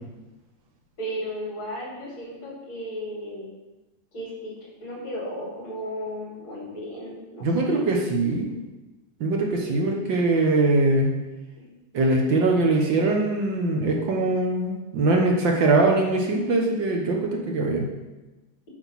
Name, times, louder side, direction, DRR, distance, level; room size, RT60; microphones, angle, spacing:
voice 1, 1.0-3.5 4.1-4.5 4.8-7.8, equal, 65° left, -3 dB, 3.6 m, -34 dB
voice 2, 7.4-8.5 9.2-11.1 11.9-17.9, right 2 dB, 60° right, 0 dB, 1.8 m, -22 dB
8.3 x 5.6 x 5.8 m, 1.1 s
omnidirectional pair, 2.4 m